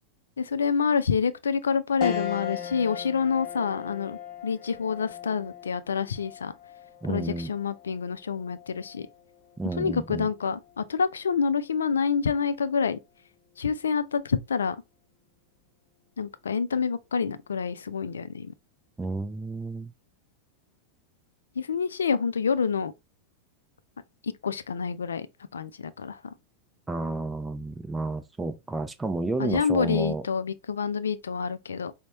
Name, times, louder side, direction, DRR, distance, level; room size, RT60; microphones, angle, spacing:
voice 1, 0.4-6.6 7.1-9.1 9.8-13.0 13.6-14.8 16.2-18.5 21.6-22.9 24.2-25.3 25.5-26.3 29.4-31.9, left 6 dB, 70° left, 0.4 m, -27 dB
sound 1, 2.0-11.6 12.1-12.2 13.5-14.0, left 9 dB, 35° left, 0.9 m, -39 dB
voice 2, 7.0-7.5 9.6-10.3 19.0-19.9 26.9-30.3, right 2 dB, 10° right, 0.4 m, -31 dB
5.2 x 2.1 x 2.8 m
figure-of-eight pair, 90°, 0 cm